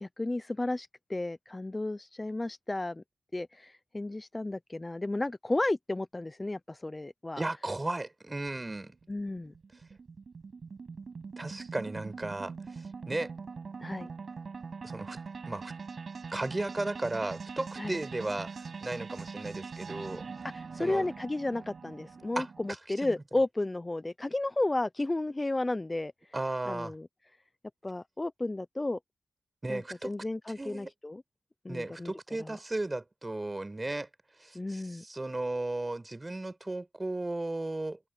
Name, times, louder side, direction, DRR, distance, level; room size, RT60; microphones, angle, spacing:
voice 1, 0.0-3.0 3.3-7.4 9.1-9.5 13.8-14.1 17.8-18.0 20.5-26.1 26.7-27.1 27.8-29.0 29.7-31.2 31.6-32.1 34.5-35.0, left 2 dB, 25° left, 0.6 m, -33 dB
voice 2, 7.4-9.0 11.4-13.3 14.8-15.2 15.5-15.7 16.3-20.2 20.8-21.1 22.4-23.2 26.3-26.9 29.6-30.2 30.6-30.9 31.7-34.1 34.4-38.0, right 2 dB, 25° right, 7.1 m, -35 dB
sound 1, 8.9-22.7, right 5 dB, 60° right, 5.9 m, -43 dB
cardioid pair, 55°, 0 cm